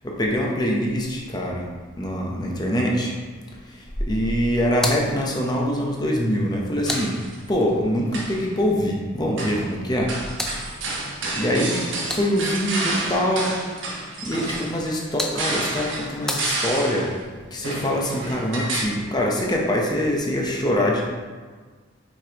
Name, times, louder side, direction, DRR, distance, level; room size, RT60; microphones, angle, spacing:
voice 1, 0.0-1.7 2.0-3.2 4.1-7.2 7.5-10.1 11.3-11.8 12.1-13.6 14.2-17.1 17.5-21.0, equal, 20° left, -2 dB, 0.8 m, -24 dB
sound 1, 4.7-7.8 9.8-12.7 14.7-17.1, left 1 dB, 5° left, 0.4 m, -35 dB
sound 2, 6.9-7.4 8.0-8.5 9.4-9.7 10.1-17.2 17.6-18.8, right 2 dB, 80° right, 1.2 m, -30 dB
6.3 x 5.1 x 2.9 m, 1.5 s
head